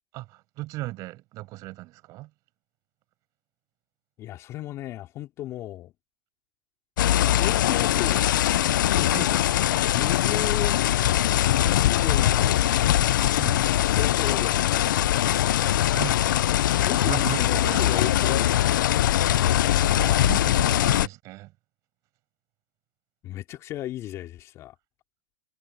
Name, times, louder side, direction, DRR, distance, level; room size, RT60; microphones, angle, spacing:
voice 1, 0.1-2.3 9.1-9.3 13.3-13.7 15.9-16.2 16.9-18.1 19.8-21.5, right 19 dB, 35° right, 7.1 m, -36 dB
voice 2, 4.2-5.9 7.2-9.4 9.7-10.8 11.6-12.9 13.9-14.8 16.8-19.2 19.9-20.3 23.2-24.7, left 14 dB, 30° left, 2.7 m, -35 dB
sound 1, 7.0-21.1, left 12 dB, 80° left, 0.4 m, -22 dB
supercardioid pair, 155°, 10 cm